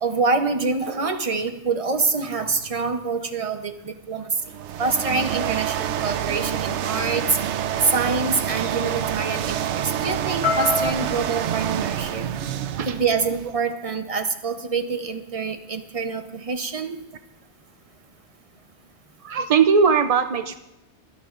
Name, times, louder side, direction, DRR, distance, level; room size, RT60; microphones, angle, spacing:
voice 1, 0.0-4.3 4.8-7.4 7.8-12.3 12.9-17.0, right 4 dB, 35° right, 7 dB, 0.8 m, -26 dB
sound 1, 4.4-13.6, right 10 dB, 75° right, 0.9 m, -27 dB
sound 2, 5.9-10.9, left 4 dB, 60° left, 2.3 m, -31 dB
voice 2, 19.2-20.6, right 6 dB, 55° right, 9 dB, 0.4 m, -20 dB
24.0 x 10.0 x 2.5 m, 0.97 s
omnidirectional pair, 1.2 m